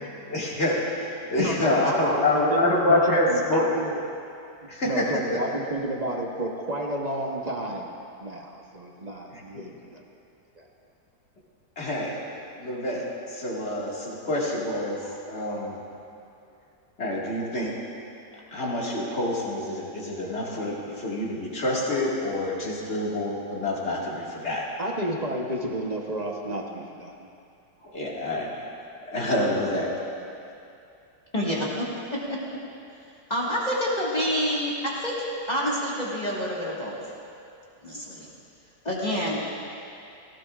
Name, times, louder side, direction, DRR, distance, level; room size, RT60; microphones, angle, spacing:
voice 1, 0.3-0.8 1.3-3.7 4.7-5.4 9.3-9.6 11.8-15.8 17.0-17.7 18.5-24.7 27.8-28.5 29.1-29.9, left 1 dB, 40° left, -5 dB, 2.2 m, -27 dB
voice 2, 1.4-2.6 2.9-3.9 4.8-10.0 10.6-10.7 24.8-27.3, right 1 dB, 35° right, 0 dB, 0.8 m, -31 dB
voice 3, 31.3-31.9 32.1-32.4 33.3-37.0 37.8-38.3 38.8-39.5, equal, 25° left, -6 dB, 1.7 m, -27 dB
17.5 x 16.0 x 2.4 m, 2.6 s
omnidirectional pair, 1.8 m